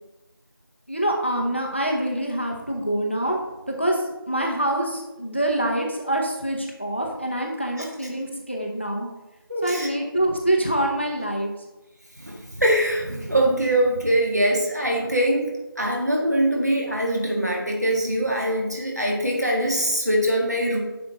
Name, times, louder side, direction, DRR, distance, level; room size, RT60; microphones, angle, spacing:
voice 1, 0.9-3.4 3.7-9.1 9.6-11.5, right 1 dB, 30° left, 1 dB, 0.7 m, -25 dB
voice 2, 9.5-9.9 12.1-20.8, right 1 dB, 45° right, -1 dB, 1.8 m, -23 dB
9.5 x 5.5 x 3.0 m, 1.0 s
figure-of-eight pair, 180°, 12 cm